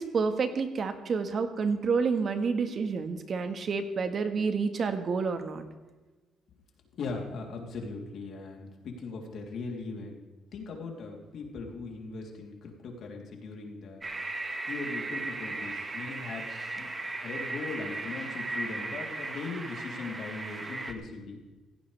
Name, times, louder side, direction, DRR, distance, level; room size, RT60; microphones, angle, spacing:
voice 1, 0.0-5.6, right 5 dB, 50° right, 7 dB, 1.5 m, -29 dB
voice 2, 6.9-10.2 10.5-14.0 14.7-21.4, left 4 dB, 65° left, 0 dB, 3.3 m, -39 dB
sound 1, 14.0-20.9, right 2 dB, 25° right, 1.6 m, -36 dB
16.5 x 16.0 x 3.4 m, 1.2 s
cardioid pair, 90°, 0 cm